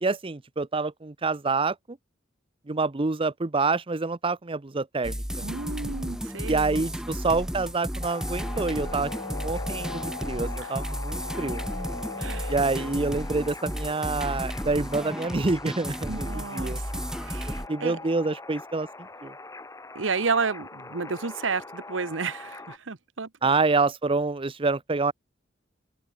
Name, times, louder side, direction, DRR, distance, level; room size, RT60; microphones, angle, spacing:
voice 1, 0.0-1.8 2.7-5.2 6.5-11.6 12.5-16.8 17.7-18.9 19.2-19.3 23.4-25.1, right 3 dB, 30° right, 0.7 m, -27 dB
sound 1, 5.0-17.7, equal, 5° right, 1.6 m, -33 dB
voice 2, 5.4-6.8 10.6-10.7 12.2-12.5 16.1-18.0 19.9-23.3, right 4 dB, 85° right, 1.1 m, -31 dB
sound 2, 8.0-22.8, left 3 dB, 15° left, 1.4 m, -43 dB
sound 3, 8.4-13.3, left 3 dB, 85° left, 3.4 m, -40 dB
head